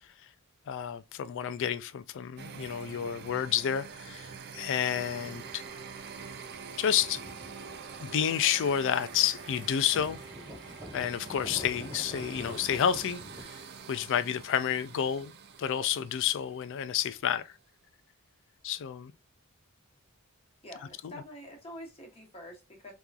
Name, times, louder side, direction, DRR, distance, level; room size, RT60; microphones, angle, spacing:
voice 1, 0.7-5.6 6.8-7.2 8.0-10.2 10.9-13.5 13.9-15.3 15.6-17.5 18.6-19.1, left 9 dB, 55° left, 0.3 m, -30 dB
sound 1, 2.4-17.1, right 6 dB, 45° right, 0.4 m, -46 dB
sound 2, 2.6-13.4, equal, 15° right, 1.2 m, -48 dB
voice 2, 20.6-22.9, left 1 dB, 25° left, 1.1 m, -46 dB
3.7 x 2.9 x 2.4 m
head